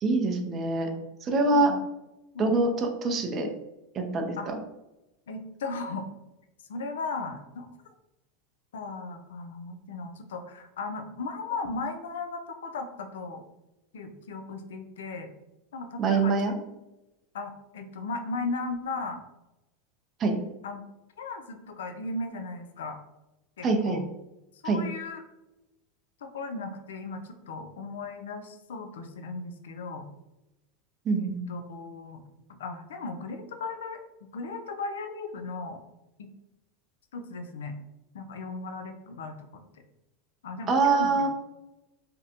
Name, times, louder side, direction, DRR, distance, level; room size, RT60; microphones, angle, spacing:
voice 1, 0.0-0.9 1.2-1.7 2.4-3.5 3.9-4.6 16.0-16.5 20.2-20.3 23.6-24.0 24.6-24.8 31.1-31.4 40.7-41.3, right 3 dB, 35° right, 3 dB, 0.5 m, -24 dB
voice 2, 1.5-1.8 2.3-2.6 4.4-4.5 5.3-6.1 6.7-7.7 8.7-13.4 13.9-15.3 15.7-16.4 17.3-19.2 20.6-20.8 21.2-23.0 23.6-24.0 24.6-25.2 26.2-30.1 31.2-32.2 32.6-34.0 34.3-35.8 36.2-36.3 37.1-37.8 38.1-39.4 40.4-41.3, left 3 dB, 90° left, 7 dB, 0.3 m, -36 dB
2.5 x 2.1 x 2.7 m, 0.97 s
supercardioid pair, 115°, 0 cm